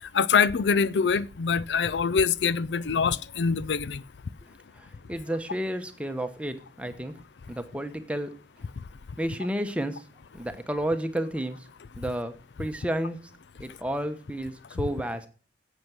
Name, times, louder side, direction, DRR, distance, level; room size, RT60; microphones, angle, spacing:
voice 1, 0.1-4.0, left 6 dB, 80° left, 0.5 m, -24 dB
voice 2, 4.8-7.1 7.5-8.3 9.2-10.0 10.3-11.6 12.0-12.3 12.6-13.2 13.6-15.3, right 1 dB, 5° right, 1.1 m, -31 dB
10.5 x 8.1 x 6.0 m
head